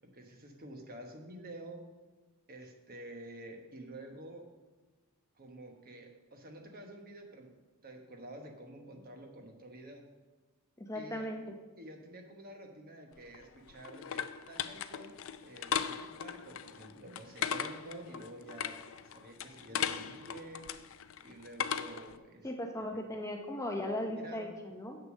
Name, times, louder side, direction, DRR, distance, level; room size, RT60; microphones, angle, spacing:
voice 1, 0.0-1.8 2.5-4.5 5.3-7.5 7.8-10.0 10.9-11.3 11.8-15.1 15.4-20.7 21.2-22.5 22.8-23.0 24.1-24.5, right 1 dB, 40° right, 3 dB, 1.1 m, -49 dB
voice 2, 10.8-11.4 22.4-25.0, left 1 dB, 15° left, 3 dB, 0.7 m, -37 dB
sound 1, 13.2-22.2, left 8 dB, 60° left, 0.4 m, -38 dB
7.9 x 6.6 x 6.3 m, 1.3 s
head